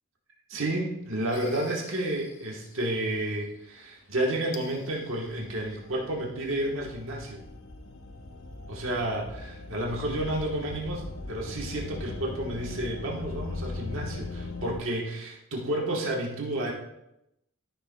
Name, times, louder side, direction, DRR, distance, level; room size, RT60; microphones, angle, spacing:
voice 1, 0.5-7.4 8.7-16.7, right 1 dB, 65° right, -1 dB, 1.3 m, -31 dB
sound 1, 1.3-2.6 4.5-14.8, left 3 dB, 65° left, 0.7 m, -40 dB
13.0 x 6.4 x 2.3 m, 0.86 s
head